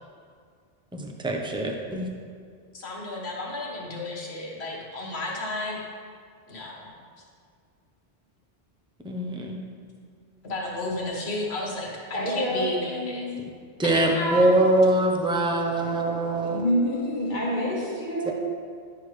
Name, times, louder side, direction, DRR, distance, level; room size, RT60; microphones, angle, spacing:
voice 1, 0.9-2.1 9.0-9.6 13.8-16.6 18.3-18.4, right 1 dB, 5° right, 1 dB, 0.6 m, -23 dB
voice 2, 2.7-5.8 6.5-6.9 10.4-13.2 13.8-14.6, left 1 dB, 90° left, -2 dB, 1.5 m, -32 dB
voice 3, 12.1-13.3 16.5-18.3, equal, 50° left, -6 dB, 1.3 m, -27 dB
10.5 x 6.5 x 3.1 m, 2.1 s
omnidirectional pair, 1.0 m